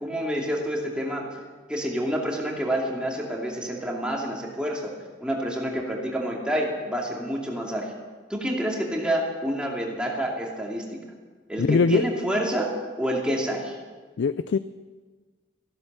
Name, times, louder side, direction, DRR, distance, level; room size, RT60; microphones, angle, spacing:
voice 1, 0.0-1.2 1.7-4.9 5.2-7.9 8.3-11.0 11.5-12.7 13.0-13.7, equal, 5° right, -2 dB, 2.6 m, -28 dB
voice 2, 11.6-12.0 14.2-14.6, left 4 dB, 70° left, 14 dB, 0.4 m, -21 dB
15.0 x 11.5 x 6.9 m, 1.4 s
head